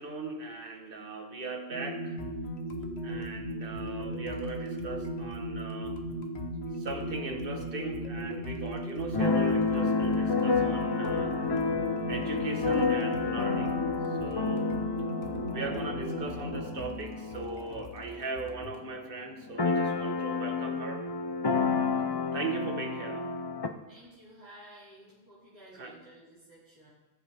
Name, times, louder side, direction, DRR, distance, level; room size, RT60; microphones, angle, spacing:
voice 1, 0.0-2.2 3.0-6.0 6.8-11.5 12.1-13.8 14.2-14.7 15.5-21.1 22.3-23.3 25.8-26.0, right 3 dB, 55° right, 4 dB, 1.4 m, -38 dB
sound 1, 1.7-16.6, right 1 dB, 80° right, 2.0 m, -37 dB
sound 2, 2.2-18.9, left 3 dB, 70° left, 1.3 m, -46 dB
Keyboard (musical), 9.1-18.7 19.0-19.1 19.3-23.7, left 4 dB, 30° left, 0.5 m, -30 dB
voice 2, 23.8-26.9, right 1 dB, 25° right, -12 dB, 4.2 m, -53 dB
18.5 x 7.5 x 3.5 m, 1.1 s
omnidirectional pair, 1.1 m